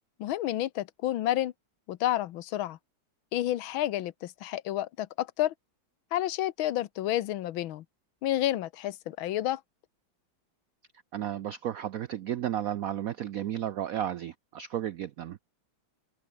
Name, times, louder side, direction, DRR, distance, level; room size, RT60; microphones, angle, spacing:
voice 1, 0.2-1.5 1.9-2.8 3.3-5.5 6.1-7.8 8.2-9.6, left 13 dB, 80° left, 1.6 m, -30 dB
voice 2, 11.1-15.4, right 11 dB, 75° right, 0.8 m, -33 dB
omnidirectional pair, 2.2 m